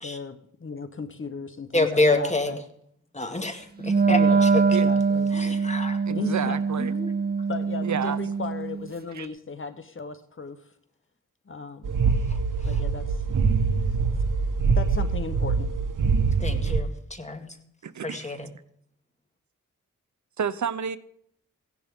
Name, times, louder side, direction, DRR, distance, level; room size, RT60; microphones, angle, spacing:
voice 1, 0.0-2.6 4.0-5.3 6.1-6.6 7.5-10.6 11.5-12.0 12.6-13.2 14.8-15.7, left 4 dB, 40° left, 0.9 m, -36 dB
voice 2, 1.7-2.6 3.1-4.5 5.3-6.0 6.8-7.1 12.3-12.8 16.2-17.5 18.0-18.5, left 2 dB, 20° left, 2.0 m, -28 dB
Wind instrument woodwind instrument, 3.8-8.9, right 5 dB, 30° right, 0.7 m, -23 dB
voice 3, 6.1-6.9 7.8-8.2 9.1-9.3 17.8-18.3 20.4-21.0, right 7 dB, 65° right, 0.7 m, -30 dB
sound 1, 11.8-16.8, right 5 dB, 85° right, 1.1 m, -24 dB
16.0 x 11.0 x 3.7 m
wide cardioid pair, 75°, 31 cm